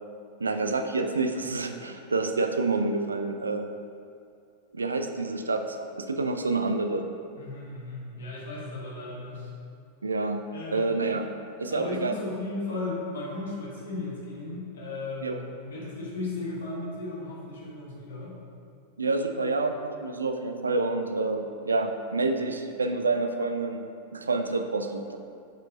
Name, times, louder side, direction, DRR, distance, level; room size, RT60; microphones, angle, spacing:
voice 1, 0.4-3.7 4.7-7.1 10.0-10.4 10.7-11.3 11.6-12.1 15.2-15.4 19.0-23.8 24.1-25.2, right 3 dB, 75° right, 6 dB, 0.4 m, -28 dB
voice 2, 7.4-9.5 10.5-10.9 11.7-18.4, left 2 dB, 65° left, -5 dB, 1.4 m, -35 dB
5.0 x 4.5 x 4.2 m, 2.4 s
figure-of-eight pair, 90°, 0 cm